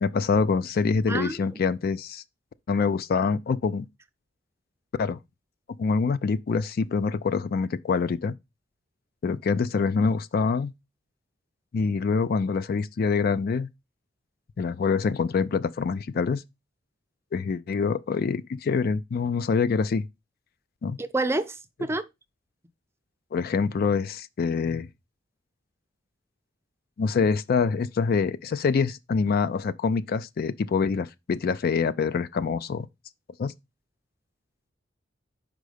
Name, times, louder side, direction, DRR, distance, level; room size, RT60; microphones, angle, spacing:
voice 1, 0.0-2.2 2.7-3.9 5.0-5.2 5.8-8.3 9.2-10.7 11.7-13.7 14.6-16.4 17.3-20.1 20.8-21.0 23.3-24.9 27.0-32.9 33.4-33.5, left 5 dB, 50° left, 0.4 m, -25 dB
voice 2, 1.1-1.5 21.0-22.0, right 2 dB, 15° right, 0.5 m, -28 dB
5.2 x 4.6 x 4.9 m
head